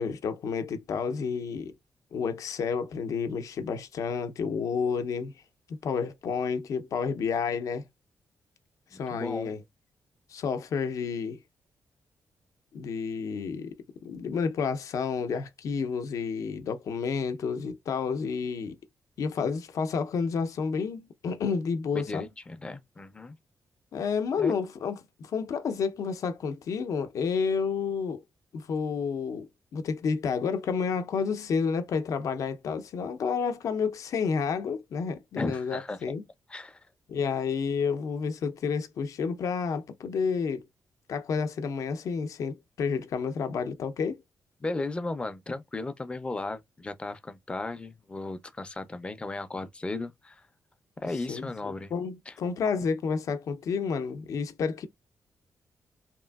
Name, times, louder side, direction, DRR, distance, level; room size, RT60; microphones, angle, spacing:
voice 1, 0.0-1.7 2.1-5.3 5.7-7.8 8.9-9.6 10.3-11.4 12.7-13.7 14.0-18.8 19.2-22.3 23.9-28.2 28.5-36.2 37.1-40.6 41.1-44.2 51.3-54.9, left 5 dB, 70° left, 0.6 m, -30 dB
voice 2, 8.9-9.5 21.9-23.4 24.4-24.5 35.4-36.0 36.5-36.8 44.6-50.4 51.0-51.9 52.3-52.4, left 2 dB, 20° left, 0.4 m, -35 dB
3.0 x 2.5 x 2.3 m
wide cardioid pair, 145°, 6 cm